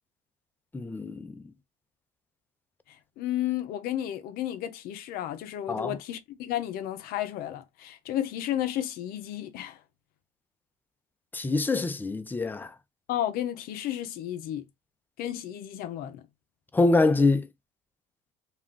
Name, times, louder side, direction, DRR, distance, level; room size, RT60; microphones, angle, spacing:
voice 1, 0.7-1.3 5.7-5.9 11.3-12.7 16.7-17.5, left 3 dB, 10° left, 0.4 m, -24 dB
voice 2, 3.2-9.8 13.1-14.7 15.2-16.2, left 12 dB, 60° left, 0.6 m, -32 dB
2.4 x 2.2 x 3.6 m
supercardioid pair, 80°, 17 cm